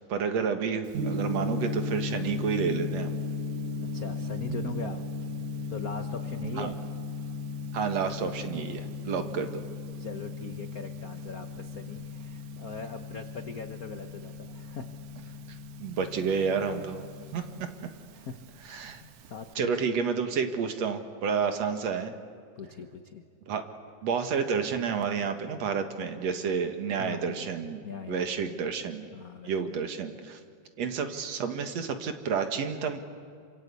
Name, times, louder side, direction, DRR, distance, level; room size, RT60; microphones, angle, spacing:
voice 1, 0.1-3.1 6.6-6.7 7.7-9.6 15.8-17.0 17.3-17.7 18.7-19.0 19.6-22.1 23.5-23.6 24.0-29.1 29.4-30.4 30.8-33.0, right 6 dB, 65° right, 7 dB, 2.6 m, -30 dB
Gong, 0.9-19.5, left 3 dB, 85° right, 2.7 m, -36 dB
voice 2, 3.9-5.0 5.7-6.7 10.0-14.9 15.2-15.4 18.1-18.4 19.0-19.7 22.5-23.2 26.9-27.4 27.8-28.3 29.1-29.5, left 5 dB, 80° left, 6 dB, 0.8 m, -40 dB
27.5 x 26.0 x 8.4 m, 2.3 s
omnidirectional pair, 3.4 m